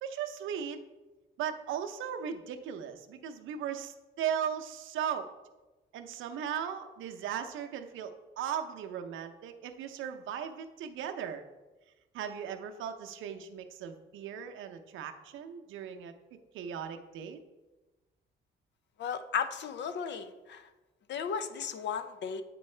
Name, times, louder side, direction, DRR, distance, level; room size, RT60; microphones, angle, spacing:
voice 1, 0.0-0.8 1.4-5.3 5.9-11.4 12.1-17.4, right 8 dB, 80° right, 6 dB, 0.6 m, -37 dB
voice 2, 19.0-20.7 21.1-22.4, left 6 dB, 65° left, 10 dB, 0.6 m, -35 dB
8.4 x 4.5 x 3.2 m, 1.1 s
cardioid pair, 90°, 20 cm